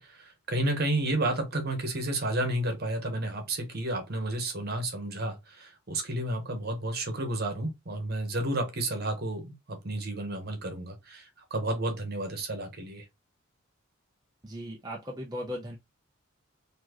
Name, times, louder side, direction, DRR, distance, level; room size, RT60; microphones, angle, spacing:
voice 1, 0.0-13.1, right 1 dB, 50° right, 1.4 m, -31 dB
voice 2, 14.4-15.8, equal, 20° right, 0.7 m, -37 dB
4.3 x 2.9 x 3.0 m
head